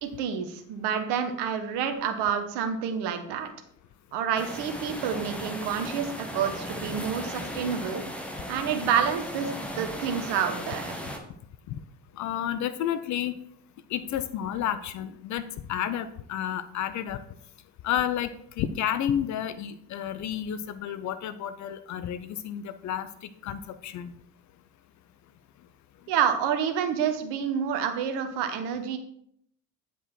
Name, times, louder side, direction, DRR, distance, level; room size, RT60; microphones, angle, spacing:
voice 1, 0.0-3.5 4.1-8.0 8.5-9.5 9.8-11.1 26.1-29.0, right 7 dB, 55° right, 7 dB, 1.4 m, -28 dB
sound 1, 4.4-11.2, equal, ahead, 1.4 m, -36 dB
voice 2, 12.1-13.4 13.9-15.4 15.7-17.2 17.8-18.3 18.6-24.1, left 10 dB, 35° left, 12 dB, 0.6 m, -31 dB
9.6 x 5.1 x 4.4 m, 0.69 s
figure-of-eight pair, 65°, 50 cm